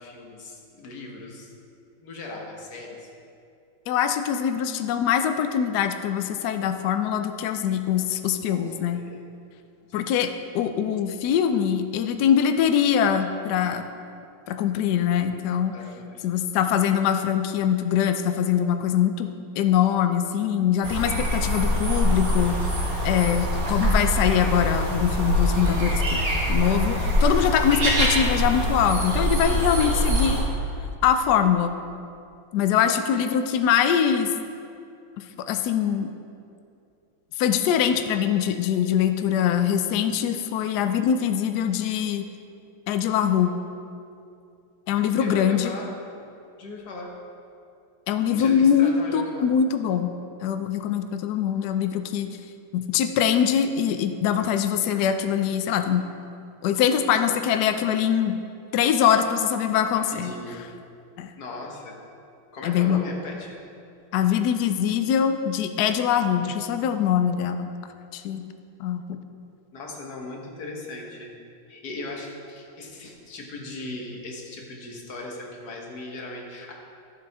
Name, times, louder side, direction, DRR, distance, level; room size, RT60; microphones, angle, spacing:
voice 1, 0.0-1.5 2.0-3.1 8.5-8.6 8.9-9.2 9.9-10.3 15.7-16.3 29.4-30.3 45.2-45.9 46.6-47.1 48.3-49.5 59.9-60.6 61.4-62.0 62.5-63.6 69.7-71.3 71.7-76.7, left 2 dB, 55° left, 0 dB, 1.7 m, -38 dB
voice 2, 3.9-9.0 9.9-13.9 14.5-15.7 16.2-19.3 19.6-22.7 23.0-30.4 31.0-31.8 32.5-34.3 35.4-36.1 37.4-42.3 42.9-43.6 44.9-45.7 48.1-50.2 50.4-52.3 52.7-56.1 56.6-58.4 58.7-60.3 61.2-61.3 62.6-63.0 64.1-67.7 68.1-68.5 68.8-69.2, left 8 dB, 85° left, 8 dB, 0.8 m, -23 dB
sound 1, 20.8-30.4, equal, 45° right, 1.9 m, -24 dB
13.0 x 7.5 x 3.5 m, 2.5 s
omnidirectional pair, 2.3 m